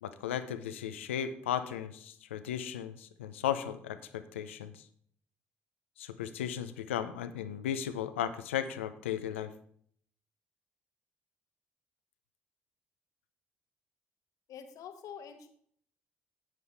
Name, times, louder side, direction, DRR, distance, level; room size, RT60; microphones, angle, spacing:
voice 1, 0.0-4.8 6.0-9.5, left 10 dB, 85° left, 11 dB, 0.6 m, -35 dB
voice 2, 14.5-15.5, left 8 dB, 65° left, 7 dB, 1.2 m, -46 dB
10.5 x 9.4 x 3.4 m, 0.62 s
hypercardioid pair, 45°, 6 cm